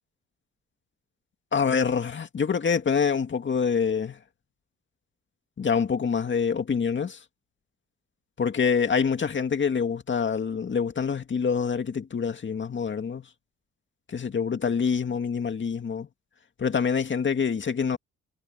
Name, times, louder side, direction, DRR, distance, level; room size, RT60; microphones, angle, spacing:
voice 1, 1.5-4.2 5.6-7.2 8.4-13.3 14.1-16.1 16.6-18.0, left 6 dB, 40° left, 2.2 m, -26 dB
cardioid pair, 90°, 30 cm